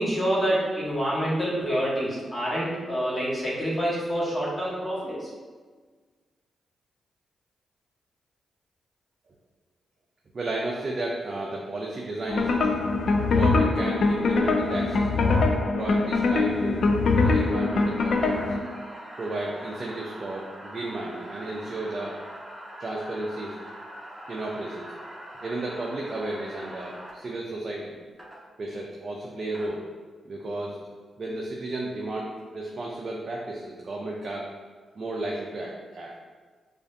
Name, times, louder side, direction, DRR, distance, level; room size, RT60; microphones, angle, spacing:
voice 1, 0.0-5.3, equal, 25° left, -8 dB, 1.4 m, -27 dB
voice 2, 10.3-12.8 13.3-16.8 17.2-18.4 19.2-22.2 22.8-23.6 24.1-24.9 25.4-28.0 28.6-29.9 30.3-30.9 31.2-34.5 34.9-36.2, right 2 dB, 50° right, -2 dB, 0.5 m, -33 dB
sound 1, 12.3-18.6, left 3 dB, 65° left, 0.4 m, -23 dB
sound 2, 17.2-27.1 28.2-28.4 29.3-29.7, equal, 10° right, 1.2 m, -42 dB
4.8 x 2.5 x 2.6 m, 1.5 s
supercardioid pair, 45°, 0 cm